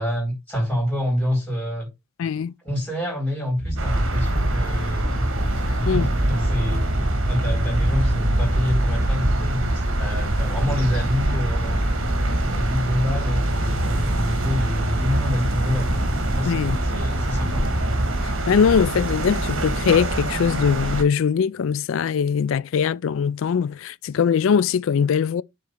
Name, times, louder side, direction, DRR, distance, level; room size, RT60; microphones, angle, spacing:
voice 1, 0.0-1.9 2.6-5.3 5.6-6.9 7.3-11.9 12.4-17.6, left 1 dB, 5° left, 4.0 m, -27 dB
voice 2, 2.2-2.5 5.9-6.1 16.5-16.8 18.2-25.4, left 7 dB, 65° left, 0.3 m, -21 dB
sound 1, 3.6-18.2, right 1 dB, 45° right, 3.2 m, -25 dB
sound 2, 3.8-21.0, right 1 dB, 65° right, 1.4 m, -27 dB
6.7 x 4.1 x 4.8 m
head